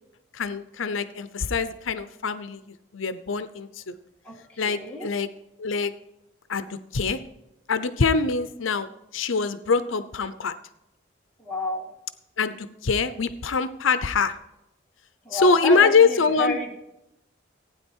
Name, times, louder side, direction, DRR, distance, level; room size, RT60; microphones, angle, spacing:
voice 1, 0.3-3.9 4.6-5.3 5.6-5.9 6.5-7.2 7.7-10.5 12.4-14.3 15.3-16.6, left 4 dB, 85° left, 13 dB, 0.7 m, -24 dB
voice 2, 4.2-5.1 11.4-11.9 15.2-16.7, left 1 dB, 5° left, -3 dB, 2.1 m, -30 dB
15.5 x 9.3 x 4.5 m, 0.90 s
head